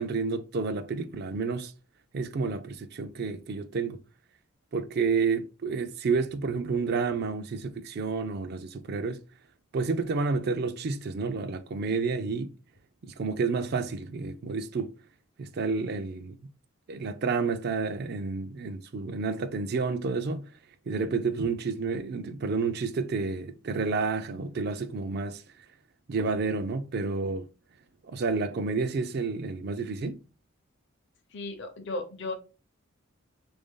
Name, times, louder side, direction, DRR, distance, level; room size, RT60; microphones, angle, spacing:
voice 1, 0.0-1.7 2.1-4.0 4.7-9.2 9.7-12.5 13.0-14.9 15.4-16.4 16.9-20.5 20.9-25.4 26.1-27.5 28.1-30.2, right 4 dB, 50° right, 0.4 m, -30 dB
voice 2, 31.3-32.3, left 2 dB, 55° left, 0.7 m, -35 dB
3.4 x 2.6 x 3.6 m
head